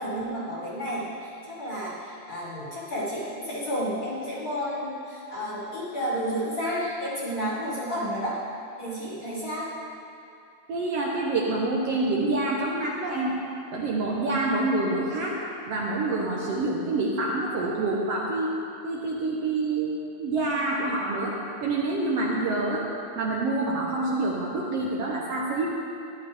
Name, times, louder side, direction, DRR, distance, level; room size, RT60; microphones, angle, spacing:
voice 1, 0.0-8.4 8.8-9.7, equal, 35° left, -8 dB, 2.3 m, -31 dB
voice 2, 10.7-13.3 13.7-15.3 15.7-21.3 21.6-22.8 23.2-25.7, right 2 dB, 65° right, -4 dB, 1.8 m, -27 dB
13.5 x 11.0 x 3.4 m, 2.6 s
omnidirectional pair, 3.5 m